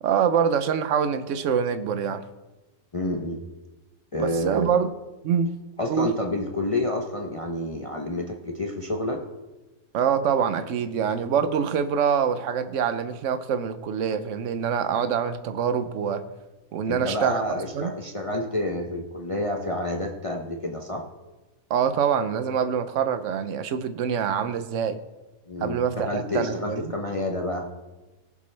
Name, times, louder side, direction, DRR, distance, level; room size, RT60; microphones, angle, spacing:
voice 1, 0.0-2.2 4.2-4.9 5.2-5.6 5.9-6.1 9.9-16.2 16.7-17.4 17.7-18.0 21.7-25.0 25.6-26.8, right 7 dB, 65° right, 11 dB, 1.1 m, -25 dB
voice 2, 2.9-3.4 4.1-4.7 5.8-9.2 16.9-21.0 25.5-27.7, left 1 dB, 30° left, 2 dB, 0.8 m, -29 dB
18.5 x 7.5 x 3.3 m, 1.1 s
omnidirectional pair, 1.5 m